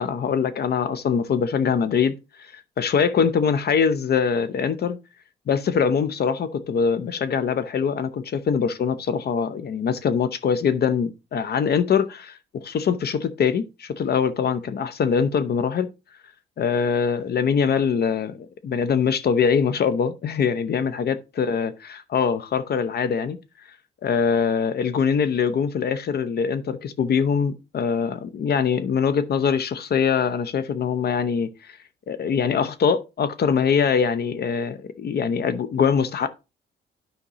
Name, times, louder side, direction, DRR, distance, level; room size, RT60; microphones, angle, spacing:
voice 1, 0.0-5.0 5.5-15.9 16.6-18.4 18.6-23.4 24.0-31.8 32.1-36.3, left 6 dB, 50° left, 0.7 m, -23 dB
9.9 x 5.2 x 2.9 m
cardioid pair, 90°, 20 cm